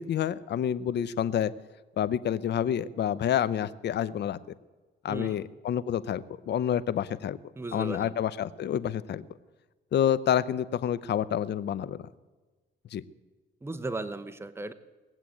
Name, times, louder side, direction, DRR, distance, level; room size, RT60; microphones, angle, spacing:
voice 1, 0.0-1.5 2.0-4.4 5.0-7.4 7.7-9.2 9.9-12.0 12.9-13.0, left 10 dB, 60° left, 16 dB, 0.7 m, -28 dB
voice 2, 5.1-5.4 7.6-8.2 13.6-14.7, right 2 dB, 10° right, 10 dB, 0.8 m, -36 dB
19.0 x 7.6 x 8.5 m, 1.3 s
cardioid pair, 90°, 20 cm